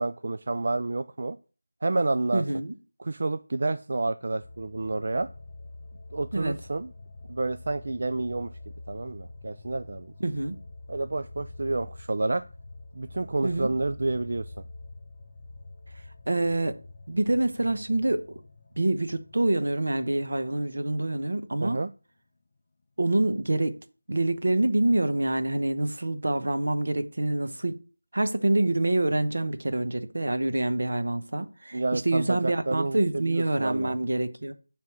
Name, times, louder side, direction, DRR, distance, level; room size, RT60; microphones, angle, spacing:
voice 1, 0.0-1.4 1.8-2.4 3.0-5.3 6.1-6.9 7.3-8.5 8.9-10.1 10.9-12.4 12.9-14.6 21.6-21.9 31.7-33.9, right 2 dB, 45° right, 0.3 m, -29 dB
voice 2, 2.3-2.7 6.3-6.6 10.2-10.6 13.4-13.7 16.3-16.8 17.1-18.4 18.7-21.8 23.0-23.7 24.1-27.8 28.1-34.5, right 2 dB, 65° right, 1.0 m, -26 dB
sound 1, 4.4-21.9 22.3-22.4, left 2 dB, 35° left, 0.7 m, -46 dB
7.4 x 3.6 x 5.9 m
figure-of-eight pair, 175°, 0 cm